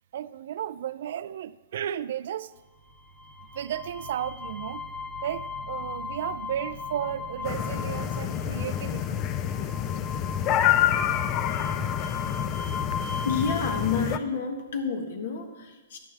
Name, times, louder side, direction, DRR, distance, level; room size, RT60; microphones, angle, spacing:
voice 1, 0.1-2.5 3.5-4.8 5.2-9.3 11.8-11.9, right 10 dB, 55° right, 0.3 m, -34 dB
sound 1, 2.9-13.9, left 3 dB, 10° left, 1.3 m, -37 dB
sound 2, 7.4-14.2, left 11 dB, 25° left, 0.3 m, -28 dB
voice 2, 13.2-16.0, left 5 dB, 60° left, 1.5 m, -29 dB
11.5 x 8.7 x 3.4 m
hypercardioid pair, 165°, 0 cm